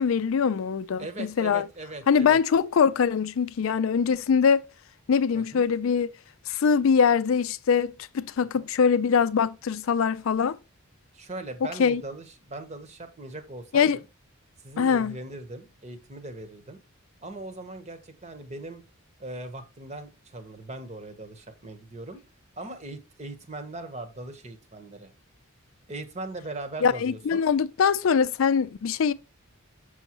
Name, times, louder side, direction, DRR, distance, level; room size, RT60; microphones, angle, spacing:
voice 1, 0.0-1.7 2.1-4.6 5.1-6.1 6.5-10.6 11.8-12.0 13.7-14.0 14.8-15.2 26.8-29.1, left 6 dB, 65° left, 0.4 m, -23 dB
voice 2, 1.0-2.4 5.3-5.6 8.6-8.7 11.1-14.0 14.6-16.8 17.2-18.8 19.2-22.2 22.6-25.1 25.9-27.5, right 2 dB, 30° right, 1.0 m, -39 dB
6.5 x 6.3 x 3.0 m
head